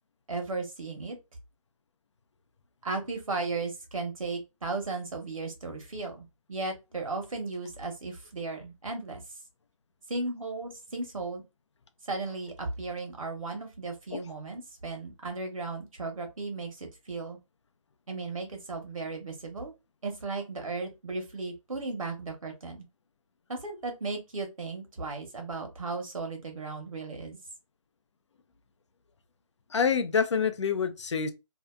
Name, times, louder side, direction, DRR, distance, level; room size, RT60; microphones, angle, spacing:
voice 1, 0.3-1.2 2.8-9.2 10.1-11.4 12.0-17.4 18.1-19.7 20.0-22.8 23.5-27.4, right 3 dB, 70° right, 1.2 m, -35 dB
voice 2, 29.7-31.3, left 6 dB, 55° left, 0.5 m, -26 dB
2.7 x 2.3 x 2.3 m
figure-of-eight pair, 155°, 18 cm